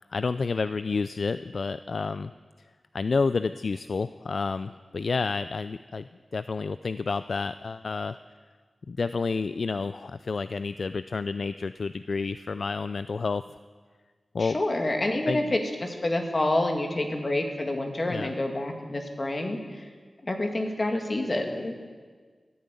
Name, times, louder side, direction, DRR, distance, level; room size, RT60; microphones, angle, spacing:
voice 1, 0.1-2.3 2.6-2.7 2.9-8.2 8.9-13.4 14.3-14.6 15.3-15.6 18.1-18.3, left 4 dB, 70° left, 13 dB, 0.3 m, -30 dB
voice 2, 14.4-19.9 20.2-21.7, left 1 dB, 45° left, 3 dB, 2.3 m, -28 dB
14.5 x 9.5 x 8.3 m, 1.5 s
cardioid pair, 40°, 0 cm